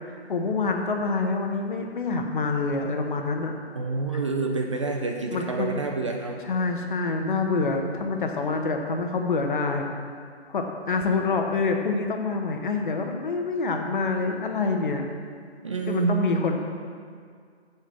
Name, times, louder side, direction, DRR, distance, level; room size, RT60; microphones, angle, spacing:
voice 1, 0.1-3.5 4.1-4.3 5.3-5.8 6.4-9.9 10.5-15.0 15.9-16.6, left 4 dB, 50° left, 3 dB, 1.2 m, -26 dB
voice 2, 3.7-6.4 15.6-16.2, right 4 dB, 30° right, 2 dB, 0.6 m, -28 dB
7.7 x 6.4 x 7.3 m, 2.1 s
hypercardioid pair, 155°, 33 cm